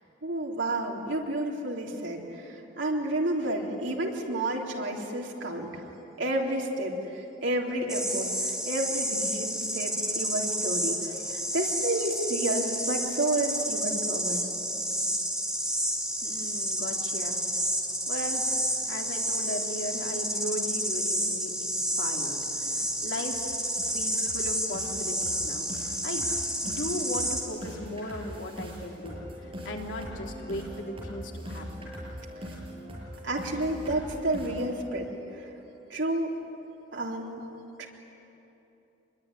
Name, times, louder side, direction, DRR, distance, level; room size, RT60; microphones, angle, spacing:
voice 1, 0.2-5.8 6.2-6.9 7.4-8.3 8.6-11.0 11.3-14.4 33.2-35.1 35.3-35.4 35.9-36.3 36.9-37.4 37.8-37.9, right 1 dB, 85° right, -1 dB, 3.7 m, -30 dB
sound 1, 7.9-27.4, right 1 dB, 5° right, 3.9 m, -30 dB
voice 2, 16.2-17.4 18.1-18.5 18.9-23.4 23.9-26.3 26.6-32.0, left 1 dB, 80° left, 0 dB, 3.3 m, -37 dB
sound 2, 22.3-22.4 22.8-23.0 23.3-23.5 23.8-34.8, equal, 30° right, 6.9 m, -41 dB
26.0 x 22.0 x 10.0 m, 3.0 s
head